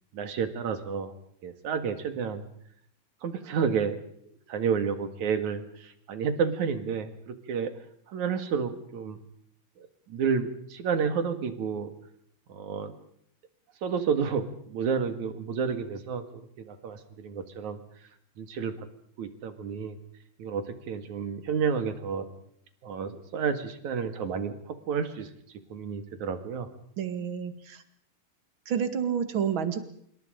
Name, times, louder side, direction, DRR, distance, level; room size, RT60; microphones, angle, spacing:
voice 1, 0.1-1.1 1.4-2.5 3.2-4.0 4.2-7.7 8.1-9.2 9.8-11.9 12.5-12.9 13.8-17.8 18.4-18.7 19.2-20.0 20.4-22.3 22.8-25.3 25.7-26.7, right 6 dB, 65° right, 9 dB, 3.2 m, -30 dB
voice 2, 27.0-27.8 28.7-29.8, right 8 dB, 40° right, 10 dB, 2.4 m, -29 dB
26.5 x 23.5 x 5.2 m, 0.68 s
omnidirectional pair, 3.8 m